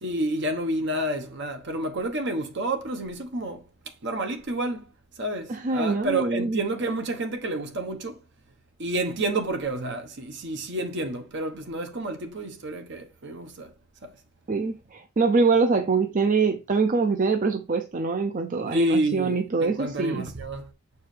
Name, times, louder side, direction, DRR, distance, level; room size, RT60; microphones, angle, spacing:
voice 1, 0.0-8.2 8.8-13.7 14.0-14.1 18.7-20.7, right 2 dB, 55° right, 1.1 m, -30 dB
voice 2, 5.5-6.6 14.5-20.3, right 4 dB, 40° right, 0.5 m, -24 dB
7.1 x 4.7 x 3.2 m
head